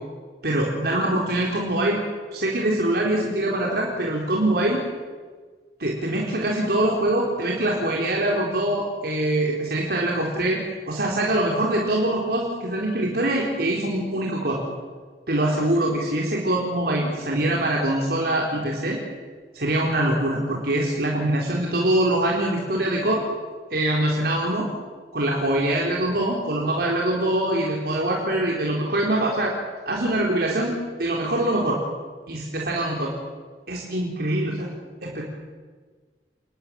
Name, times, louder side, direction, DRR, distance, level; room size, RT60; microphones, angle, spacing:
voice 1, 0.4-2.0 2.3-4.8 5.8-14.6 15.3-19.0 19.5-23.2 23.7-24.7 25.1-29.5 29.9-31.8 32.3-33.1 33.7-34.7 35.0-35.2, right 1 dB, 60° right, -2 dB, 4.3 m, -23 dB
29.5 x 21.0 x 8.9 m, 1.5 s
head